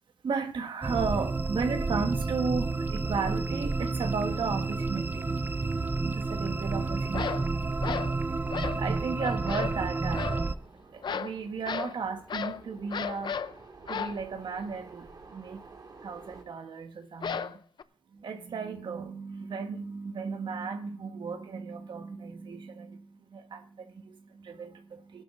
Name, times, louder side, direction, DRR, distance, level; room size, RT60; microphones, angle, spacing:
voice 1, 0.2-5.4 6.0-7.5 8.6-10.5 10.9-13.4 13.9-15.6 16.0-17.6 18.1-25.2, right 5 dB, 85° right, 1.3 m, -35 dB
sound 1, 0.8-10.6, right 3 dB, 25° right, 0.5 m, -30 dB
sound 2, 7.1-7.5 7.8-8.2 8.5-8.8 9.2-9.8 10.1-10.4 11.0-11.4 11.7-12.0 12.3-12.6 12.9-13.5 13.9-14.2 17.2-17.8, left 7 dB, 70° left, 0.5 m, -34 dB
sound 3, 9.0-16.4, right 3 dB, 60° right, 1.8 m, -52 dB
19.0 x 11.5 x 2.5 m
wide cardioid pair, 95°, 8 cm